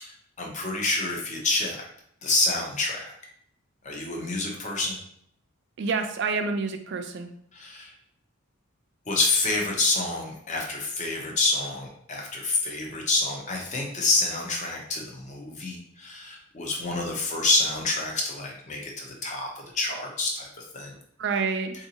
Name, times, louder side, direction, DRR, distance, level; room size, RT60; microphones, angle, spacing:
voice 1, 0.0-1.8 2.2-3.1 3.8-5.0 7.5-7.9 9.1-19.5 19.7-20.5 20.7-20.9, left 3 dB, 35° left, 0 dB, 0.6 m, -27 dB
voice 2, 5.8-7.3 21.2-21.7, right 4 dB, 55° right, 6 dB, 0.4 m, -28 dB
3.7 x 2.6 x 2.7 m, 0.67 s
head